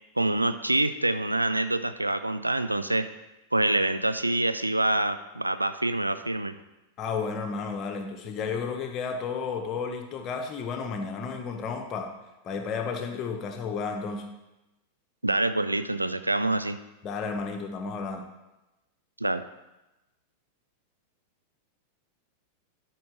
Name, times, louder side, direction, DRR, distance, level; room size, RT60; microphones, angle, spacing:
voice 1, 0.2-3.1 3.5-6.6 15.2-16.8 19.2-19.4, right 2 dB, 85° right, 11 dB, 0.4 m, -26 dB
voice 2, 7.0-12.1 12.4-14.3 17.0-18.3, left 5 dB, 30° left, 4 dB, 1.2 m, -32 dB
12.0 x 5.9 x 3.7 m, 1.0 s
figure-of-eight pair, 90°, 0 cm